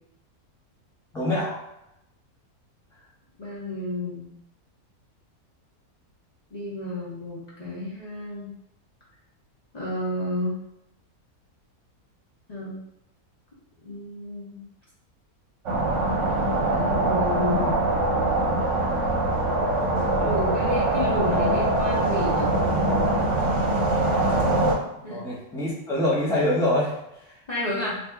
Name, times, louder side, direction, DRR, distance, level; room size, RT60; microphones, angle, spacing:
voice 1, 1.1-1.6 25.1-27.0 27.3-27.4, left 1 dB, 5° left, -6 dB, 0.4 m, -24 dB
voice 2, 3.4-4.3 6.5-8.5 9.7-10.6 12.5-12.8 13.8-14.6 16.7-17.9 20.1-22.5 24.0-24.1 25.0-25.2 27.5-28.0, left 1 dB, 35° left, -7 dB, 0.7 m, -31 dB
sound 1, 15.7-24.7, right 2 dB, 60° right, 1.0 m, -23 dB
2.8 x 2.7 x 3.4 m, 0.83 s
omnidirectional pair, 1.6 m